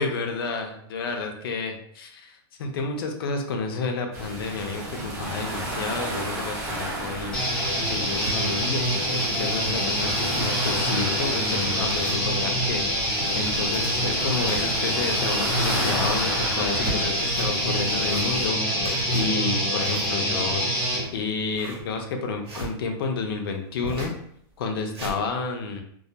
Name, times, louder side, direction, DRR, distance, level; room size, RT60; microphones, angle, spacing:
voice 1, 0.0-7.5 7.9-20.6 21.1-24.1 24.6-25.8, left 4 dB, 60° left, 4 dB, 0.4 m, -30 dB
sound 1, 4.1-18.5, right 1 dB, 40° right, 0.6 m, -34 dB
sound 2, 7.3-21.0, equal, 5° left, 0.5 m, -25 dB
sound 3, 7.9-8.4 8.9-9.0 9.3-9.4 9.8-9.9 10.1-10.6 11.1-11.2 11.9-12.7 13.4-14.9 15.4-16.0 16.5-17.5 17.9-18.5 18.8-22.7 23.8-24.2 24.6-25.2, right 1 dB, 80° right, 1.1 m, -37 dB
2.2 x 2.2 x 2.7 m, 0.69 s
supercardioid pair, 175°, 14 cm